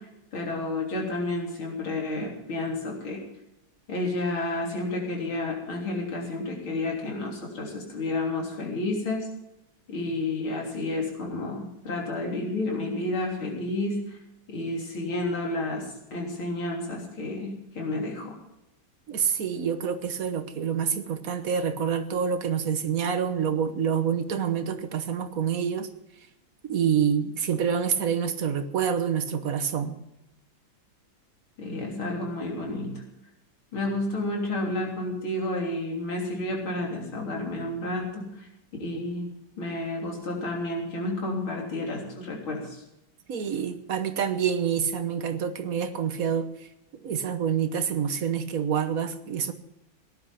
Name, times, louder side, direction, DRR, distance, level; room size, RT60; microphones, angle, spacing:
voice 1, 0.0-3.2 3.9-9.3 9.9-14.2 14.5-18.4 31.6-33.0 33.7-38.5 38.8-39.3 39.6-42.8, left 2 dB, 90° left, -1 dB, 4.2 m, -31 dB
voice 2, 19.1-25.9 26.6-29.9 43.3-46.5 47.0-49.5, right 7 dB, 50° right, 9 dB, 1.3 m, -27 dB
17.0 x 11.0 x 5.7 m, 0.88 s
omnidirectional pair, 2.2 m